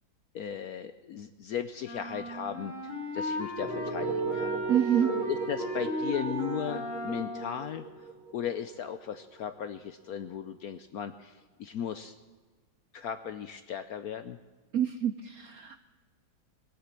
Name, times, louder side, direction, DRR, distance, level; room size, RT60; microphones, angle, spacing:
voice 1, 0.3-4.6 5.3-8.1 8.3-12.1 12.9-14.4, left 9 dB, 70° left, 11 dB, 0.9 m, -37 dB
sound 1, 1.8-7.6, equal, 40° left, 2.7 m, -36 dB
sound 2, 3.6-9.4, right 4 dB, 40° right, 3.1 m, -36 dB
voice 2, 4.7-5.2 14.7-15.8, right 9 dB, 75° right, 11 dB, 0.8 m, -27 dB
20.0 x 8.5 x 7.3 m, 1.4 s
omnidirectional pair, 2.1 m